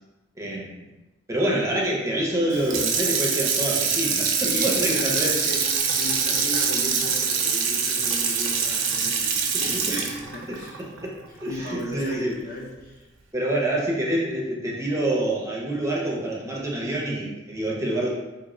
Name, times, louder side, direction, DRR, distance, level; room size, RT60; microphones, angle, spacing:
voice 1, 0.4-0.9 1.3-5.3 9.5-10.2 10.5-10.6 11.0-11.1 11.4-12.4 13.3-18.1, right 1 dB, 15° right, -3 dB, 0.4 m, -27 dB
Water tap faucet / Sink (filling or washing), 2.5-11.7 12.1-12.2, right 6 dB, 80° right, 0.4 m, -24 dB
voice 2, 4.4-10.8 11.3-13.1, left 1 dB, 50° left, -3 dB, 0.6 m, -35 dB
2.7 x 2.0 x 3.6 m, 1.1 s
head